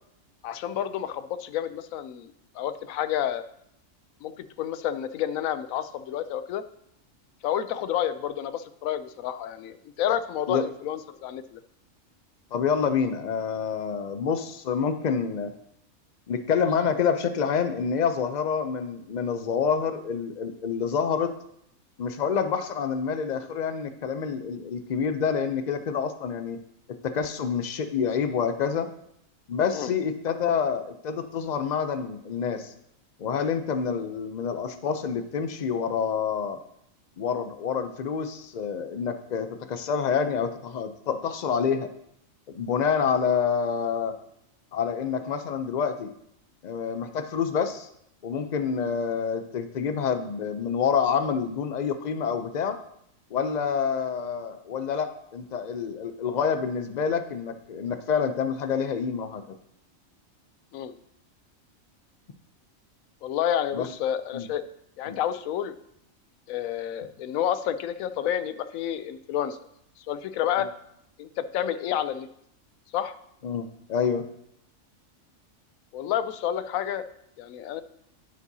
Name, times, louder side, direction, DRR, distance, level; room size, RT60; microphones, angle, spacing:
voice 1, 0.4-3.4 4.2-6.6 7.4-11.6 29.7-29.9 60.7-60.9 63.2-64.6 65.0-65.8 66.5-69.6 70.1-70.7 71.2-72.3 72.9-73.2 75.9-77.0 77.4-77.8, left 10 dB, 85° left, 12 dB, 1.0 m, -29 dB
voice 2, 12.5-15.5 16.3-21.3 22.0-26.6 27.0-28.9 29.5-32.7 33.2-36.6 37.2-41.9 42.5-44.1 44.7-46.1 46.6-47.9 48.2-52.8 53.3-59.6 63.7-63.9 64.3-64.5 65.1-65.2 70.6-70.7 73.4-74.2, left 6 dB, 55° left, 9 dB, 0.5 m, -27 dB
10.5 x 7.2 x 2.7 m, 0.74 s
omnidirectional pair, 1.4 m